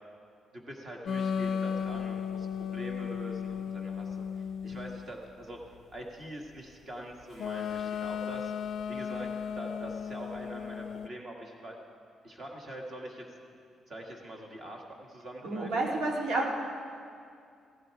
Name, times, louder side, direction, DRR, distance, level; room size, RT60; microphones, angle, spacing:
voice 1, 0.5-5.6 5.9-8.5 8.9-9.3 9.5-11.8 12.2-13.2 13.9-14.8 15.1-16.0, right 1 dB, 35° right, 0 dB, 1.8 m, -44 dB
sound 1, 1.1-5.1 7.4-11.1, left 7 dB, 55° left, 0.3 m, -35 dB
voice 2, 15.4-16.5, right 2 dB, 80° right, -1 dB, 2.4 m, -30 dB
16.0 x 15.0 x 4.8 m, 2.3 s
cardioid pair, 155°, 0 cm